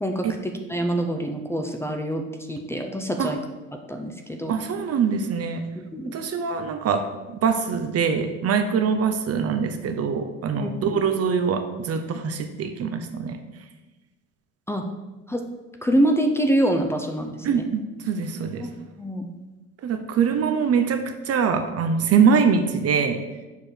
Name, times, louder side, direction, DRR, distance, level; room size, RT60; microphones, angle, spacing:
voice 1, 0.0-3.4 3.9-4.5 5.8-6.1 10.6-11.0 14.7-14.8 15.3-15.4 15.8-17.7 18.6-18.7 19.0-19.3, right 1 dB, 5° left, 4 dB, 0.7 m, -25 dB
voice 2, 4.5-5.6 6.1-7.0 7.3-13.4 17.4-18.7 19.8-23.2, right 6 dB, 40° right, 7 dB, 0.8 m, -23 dB
6.9 x 4.8 x 4.6 m, 1.1 s
hypercardioid pair, 80°, 36 cm